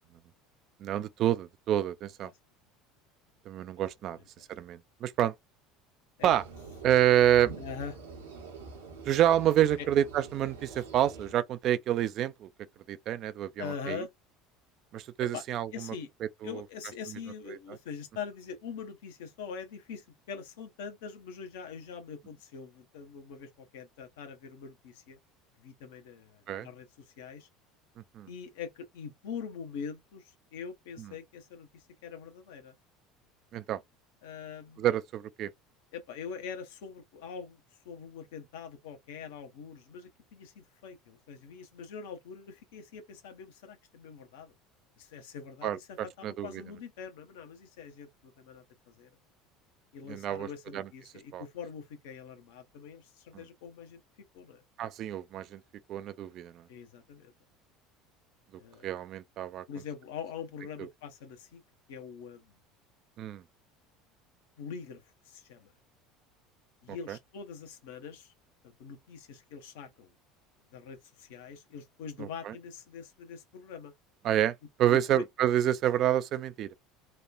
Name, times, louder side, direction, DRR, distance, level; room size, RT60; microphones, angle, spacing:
voice 1, 0.8-2.3 3.5-4.2 4.5-5.3 6.2-6.4 6.8-7.5 9.1-12.5 12.9-14.1 14.9-15.9 16.4-16.6 17.5-17.6 26.5-26.7 28.0-28.3 31.0-31.1 33.5-33.8 34.8-35.5 45.6-46.5 50.1-50.5 50.7-50.9 51.3-51.4 54.8-55.6 55.9-56.6 58.8-59.7 63.2-63.4 67.1-67.2 72.2-72.5 74.2-76.7, right 11 dB, 45° right, 0.3 m, -28 dB
sound 1, 6.2-11.3, right 4 dB, 70° right, 0.8 m, -46 dB
voice 2, 7.6-7.9 9.8-9.9 13.6-14.1 15.3-15.4 15.7-16.1 16.4-25.2 25.6-27.5 28.3-32.7 34.2-34.9 35.9-44.5 45.0-49.1 49.9-54.0 54.3-54.6 56.7-57.3 58.6-58.9 59.7-61.6 61.9-62.6 64.6-65.7 66.8-68.3 68.6-70.1 70.7-73.9 74.9-75.2, left 6 dB, 60° left, 0.7 m, -43 dB
3.0 x 2.2 x 2.4 m
figure-of-eight pair, 65°, 0 cm